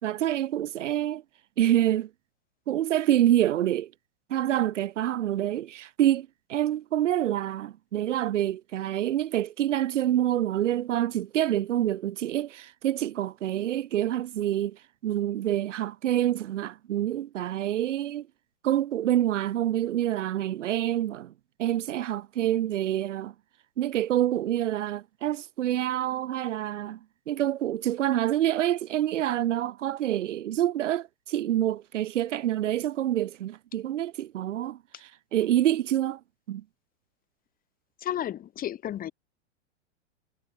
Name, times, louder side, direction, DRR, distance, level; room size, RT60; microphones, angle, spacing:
voice 1, 0.0-1.2 1.6-2.1 2.7-3.9 4.3-18.3 18.6-21.3 21.6-23.3 23.8-27.0 27.3-36.2 36.5-36.6, right 12 dB, 75° right, 1.8 m, -27 dB
voice 2, 38.0-39.1, left 11 dB, 25° left, 5.3 m, -32 dB
hypercardioid pair, 145°, 36 cm